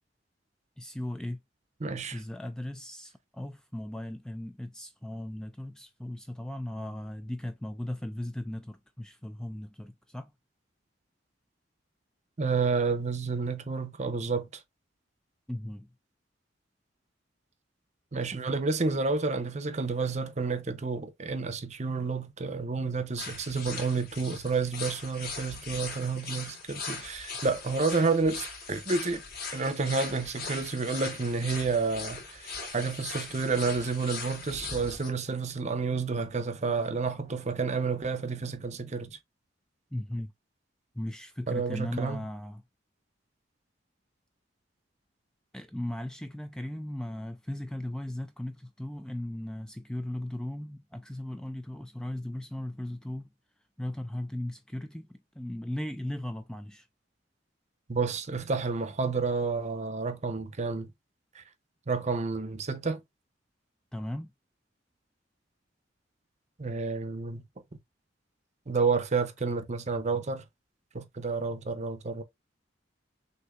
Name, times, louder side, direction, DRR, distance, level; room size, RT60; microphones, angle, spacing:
voice 1, 0.8-1.4 2.1-10.3 15.5-15.9 39.9-40.3 40.9-42.6 45.5-53.2 53.8-56.9 63.9-64.3, left 1 dB, 5° left, 0.3 m, -37 dB
voice 2, 1.8-2.2 12.4-14.5 18.1-29.2 29.5-39.2 41.5-42.2 57.9-60.9 61.3-61.4 61.9-63.0 66.6-67.4 68.7-70.4 70.9-72.2, right 4 dB, 40° right, 0.7 m, -30 dB
sound 1, 23.2-35.1, left 4 dB, 55° left, 2.0 m, -40 dB
6.3 x 2.7 x 2.4 m
head